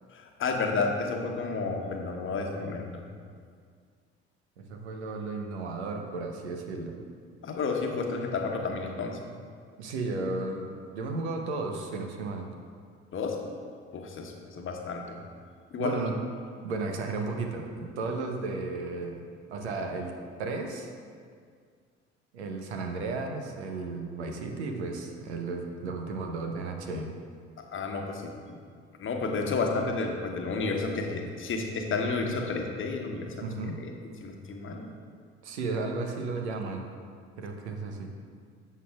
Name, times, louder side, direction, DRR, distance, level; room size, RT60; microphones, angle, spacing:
voice 1, 0.1-3.0 7.4-9.2 13.1-13.4 13.9-15.2 15.7-15.9 27.6-28.6 29.0-33.3 33.8-33.9 34.2-34.9, left 4 dB, 35° left, 2 dB, 1.1 m, -31 dB
voice 2, 4.6-7.0 9.8-12.5 15.8-16.2 16.6-20.1 20.4-20.9 22.3-27.1 33.4-33.8 35.4-36.9 37.4-38.2, right 3 dB, 75° right, 3 dB, 0.9 m, -34 dB
11.0 x 7.5 x 2.4 m, 2.1 s
figure-of-eight pair, 55°, 34 cm